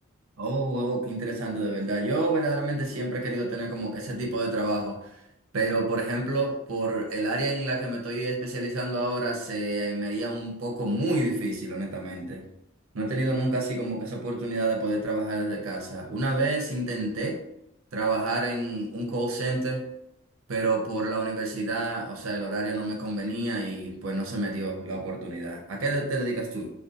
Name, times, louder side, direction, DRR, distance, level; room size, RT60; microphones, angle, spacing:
voice 1, 0.4-5.2 5.5-12.4 12.9-17.4 17.9-19.8 20.5-26.7, right 2 dB, 85° right, 1 dB, 0.6 m, -29 dB
2.5 x 2.2 x 2.5 m, 0.79 s
head